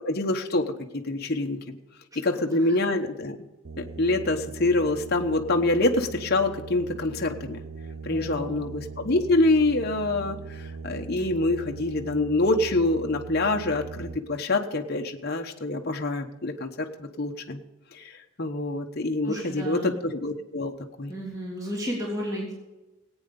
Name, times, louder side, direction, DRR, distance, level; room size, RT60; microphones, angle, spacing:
voice 1, 0.1-1.8 2.2-3.4 3.8-7.6 8.0-17.6 17.9-20.7 21.0-21.1, left 2 dB, 45° left, 2 dB, 1.1 m, -26 dB
sound 1, 3.6-14.2, right 4 dB, 65° right, 0.8 m, -40 dB
voice 2, 8.1-8.6 19.2-20.0 21.1-22.5, equal, 15° right, -3 dB, 3.4 m, -33 dB
18.5 x 9.1 x 5.3 m, 1.1 s
head